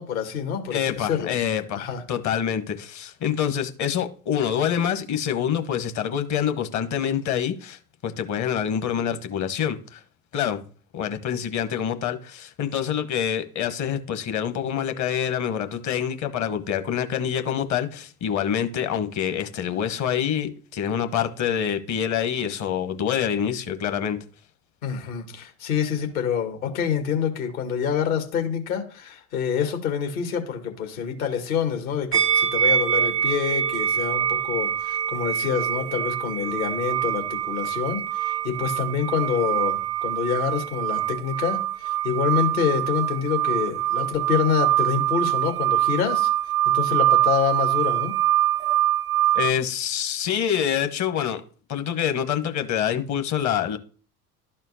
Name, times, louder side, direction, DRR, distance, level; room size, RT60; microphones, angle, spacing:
voice 1, 0.0-1.3 1.7-2.0 24.8-46.3 46.7-48.1, left 7 dB, 65° left, 1.9 m, -27 dB
voice 2, 0.7-10.0 10.3-10.6 10.9-24.2 49.3-51.4 51.7-53.8, left 9 dB, 40° left, 1.2 m, -26 dB
sound 1, 32.1-49.5, right 11 dB, 90° right, 0.7 m, -24 dB
12.5 x 4.3 x 2.8 m
figure-of-eight pair, 70°, 45 cm